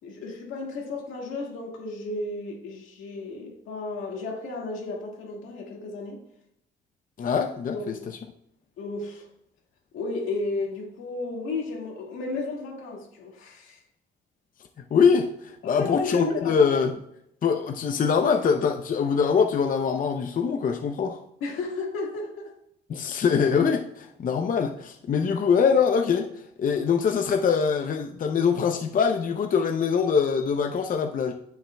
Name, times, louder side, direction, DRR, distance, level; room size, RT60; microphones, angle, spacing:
voice 1, 0.0-6.2 7.7-8.1 8.8-9.3 9.9-13.8 15.6-16.7 21.4-22.5 23.0-23.1, left 3 dB, 85° left, 1.9 m, -33 dB
voice 2, 7.2-8.0 14.9-16.9 17.4-21.2 22.9-26.3 26.6-31.3, left 6 dB, 45° left, 0.6 m, -23 dB
9.1 x 7.3 x 2.3 m
cardioid pair, 90°, 20 cm